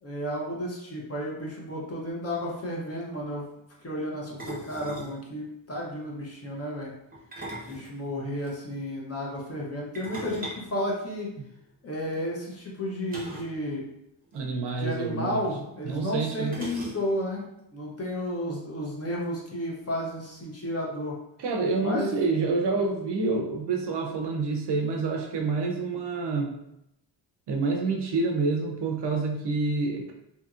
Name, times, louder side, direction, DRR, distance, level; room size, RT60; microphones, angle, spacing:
voice 1, 0.0-3.4 3.8-6.9 7.7-11.3 11.8-13.9 14.8-17.5 17.7-21.2 21.8-22.1, equal, 30° left, -3 dB, 0.6 m, -32 dB
sound 1, 2.3-2.6 4.4-5.2 7.1-8.5 9.9-11.6 13.1-13.6 13.8-13.9 14.3-14.4 15.4-15.5 16.5-17.3, equal, 20° right, 0.6 m, -40 dB
voice 2, 14.3-15.4 15.8-16.6 21.4-26.5 27.5-30.1, right 3 dB, 60° right, 2 dB, 0.5 m, -28 dB
2.8 x 2.7 x 2.4 m, 0.82 s
wide cardioid pair, 150°, 47 cm